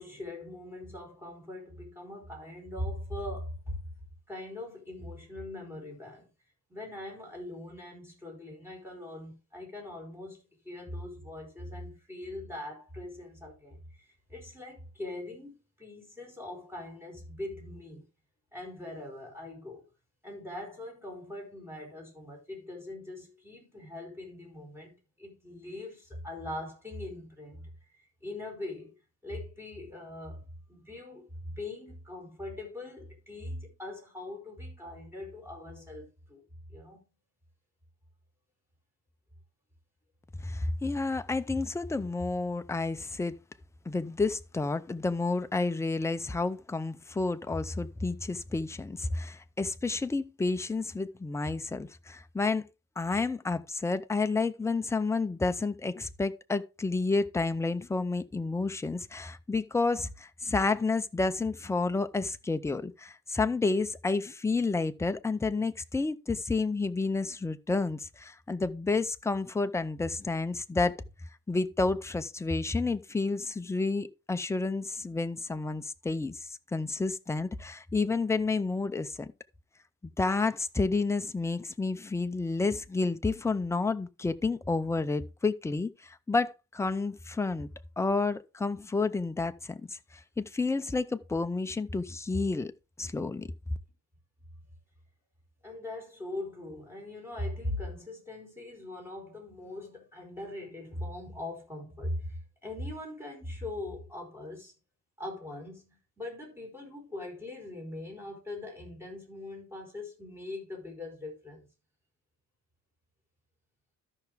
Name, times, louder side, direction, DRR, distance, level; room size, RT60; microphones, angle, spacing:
voice 1, 0.0-3.8 4.3-6.3 6.7-18.0 18.5-19.9 20.2-28.9 29.2-36.4 36.7-37.0 95.6-104.7 105.2-111.7, left 1 dB, 5° right, 4.7 m, -41 dB
voice 2, 40.4-43.4 43.9-52.7 53.0-71.0 71.5-76.4 76.7-79.3 80.2-87.7 88.0-90.0 90.4-92.7 93.0-93.5, left 3 dB, 10° left, 0.5 m, -30 dB
13.0 x 5.8 x 3.4 m
cardioid pair, 145°, 33 cm